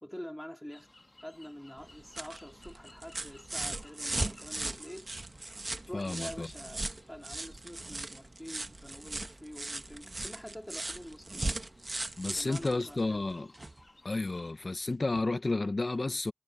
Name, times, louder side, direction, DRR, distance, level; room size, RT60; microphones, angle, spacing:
voice 1, 0.0-0.9 1.2-5.1 5.9-11.6 12.2-13.2, equal, 10° left, 2.5 m, -46 dB
sound 1, 0.7-14.5, left 2 dB, 55° left, 2.2 m, -61 dB
sound 2, 1.8-13.8 15.1-15.2, right 2 dB, 65° right, 1.3 m, -39 dB
voice 2, 5.9-6.5 12.2-13.5 14.0-16.3, left 2 dB, 85° left, 0.6 m, -31 dB
wide cardioid pair, 45°, 0 cm